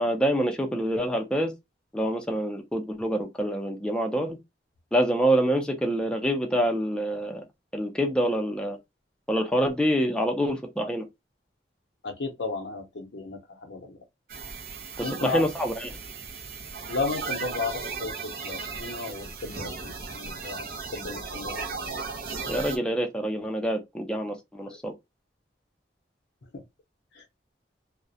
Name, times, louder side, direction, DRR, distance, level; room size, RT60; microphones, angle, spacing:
voice 1, 0.0-1.5 1.9-4.4 4.9-7.4 7.7-8.8 9.3-11.1 15.0-15.9 22.5-24.9, equal, 5° left, 0.4 m, -26 dB
voice 2, 12.0-14.0 15.0-15.4 16.9-21.7 24.6-24.8 26.5-26.6 27.1-27.2, left 3 dB, 85° left, 0.6 m, -34 dB
sound 1, 14.3-22.8, right 4 dB, 55° right, 0.6 m, -36 dB
2.3 x 2.0 x 2.6 m
head